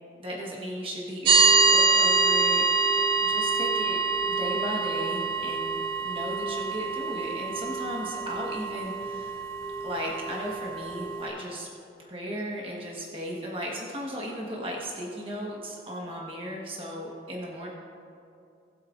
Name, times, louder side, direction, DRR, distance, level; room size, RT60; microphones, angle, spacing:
voice 1, 0.2-4.0 4.4-9.4 9.8-11.7 12.0-17.7, equal, 30° right, -3 dB, 1.3 m, -36 dB
sound 1, 1.2-11.3, right 4 dB, 55° right, 2.2 m, -25 dB
19.5 x 8.5 x 2.5 m, 2.6 s
head